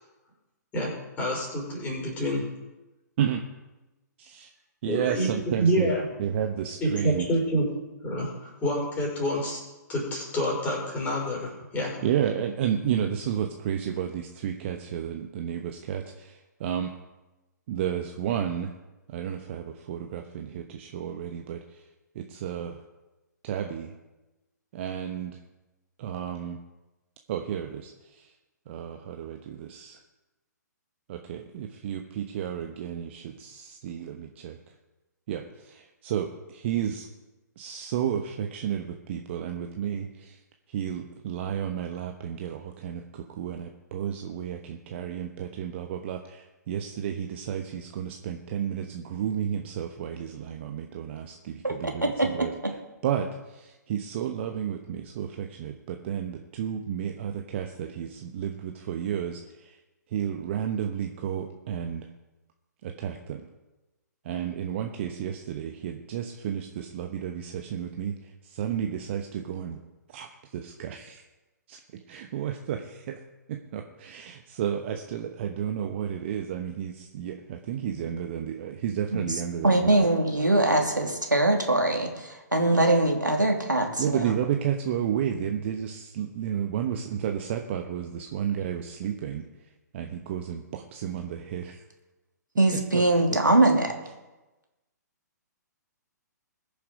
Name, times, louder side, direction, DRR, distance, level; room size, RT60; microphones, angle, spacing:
voice 1, 0.7-2.5 4.8-6.0 6.8-7.7 8.0-9.6 9.9-12.0, equal, 15° left, -2 dB, 5.1 m, -27 dB
voice 2, 4.2-4.5 4.8-5.9 6.2-7.3 12.0-16.9 17.7-18.7 19.1-21.8 22.1-22.8 23.4-23.9 24.7-25.4 26.0-26.6 27.3-28.3 28.7-30.0 31.1-34.6 35.3-37.1 37.6-40.4 40.7-52.5 53.0-59.8 60.1-62.1 62.8-63.4 64.2-69.8 70.1-71.2 71.7-71.8 72.1-73.2 73.5-80.1 84.0-89.4 89.9-91.8 92.9-93.0 93.3-93.4, right 9 dB, 40° right, 4 dB, 1.1 m, -32 dB
voice 3, 51.6-52.5 79.1-79.2 79.6-84.3 92.6-93.9, right 2 dB, 85° right, 1 dB, 2.7 m, -22 dB
21.0 x 7.1 x 5.0 m, 1.1 s
figure-of-eight pair, 125°, 10 cm